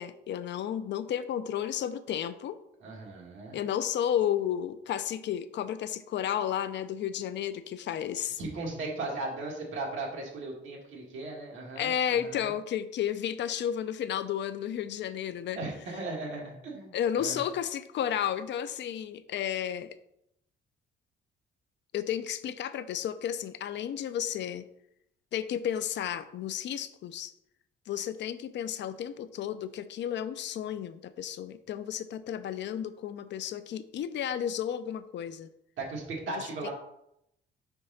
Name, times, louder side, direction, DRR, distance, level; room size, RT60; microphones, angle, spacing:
voice 1, 0.0-2.6 3.5-8.4 11.8-15.6 16.9-20.0 21.9-24.7 25.3-27.3 27.9-35.5 36.6-36.7, left 9 dB, 65° left, 12 dB, 0.5 m, -32 dB
voice 2, 2.8-3.6 8.4-12.5 15.6-16.9 17.2-17.4 35.8-36.7, right 2 dB, 80° right, -1 dB, 1.8 m, -37 dB
4.5 x 3.7 x 5.6 m, 0.79 s
cardioid pair, 90°, 20 cm